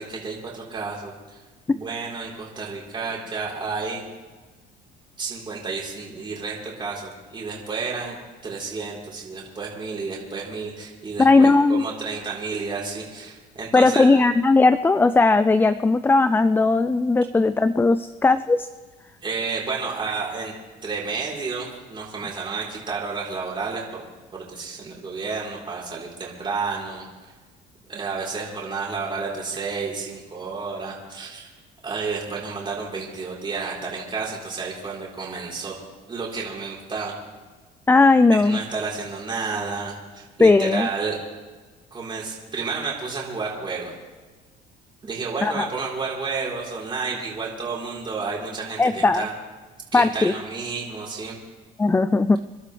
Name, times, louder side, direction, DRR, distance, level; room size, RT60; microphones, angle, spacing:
voice 1, 0.0-1.4 1.7-4.0 5.2-8.2 8.4-14.1 19.2-20.5 20.8-24.0 24.3-27.0 27.9-31.5 31.8-35.7 36.1-37.1 38.3-41.2 41.9-43.9 45.0-49.3 49.9-51.4, right 4 dB, 25° right, -4 dB, 4.0 m, -31 dB
voice 2, 11.2-11.8 13.7-18.7 37.9-38.6 40.4-40.9 45.4-45.7 48.8-49.3 49.9-50.3 51.8-52.4, left 3 dB, 10° left, 13 dB, 0.4 m, -17 dB
27.5 x 11.5 x 3.4 m, 1.3 s
cardioid pair, 115°, 18 cm